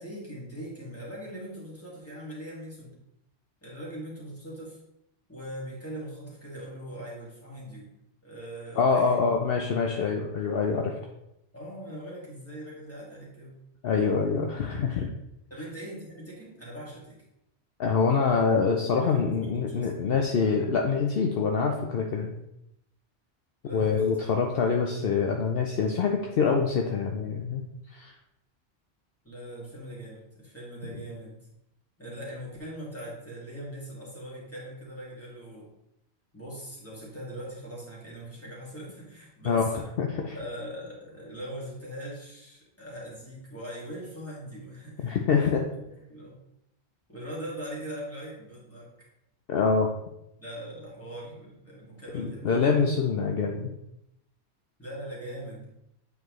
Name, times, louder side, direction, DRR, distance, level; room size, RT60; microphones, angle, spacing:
voice 1, 0.0-3.0 3.6-4.8 5.3-7.9 8.2-9.3 9.9-10.1 11.5-13.5 15.5-17.2 19.0-19.9 23.6-24.1 29.2-31.4 32.0-35.7 36.3-39.9 40.3-45.7 46.1-46.4 47.1-49.1 50.4-52.6 54.8-55.7, equal, 10° left, -6 dB, 2.2 m, -41 dB
voice 2, 8.8-10.9 13.8-15.1 17.8-22.3 23.7-27.6 27.9-28.1 39.4-39.7 40.0-40.3 45.0-45.6 49.5-49.9 52.1-53.7, left 5 dB, 65° left, 2 dB, 0.8 m, -25 dB
8.0 x 4.7 x 3.1 m, 0.84 s
omnidirectional pair, 1.1 m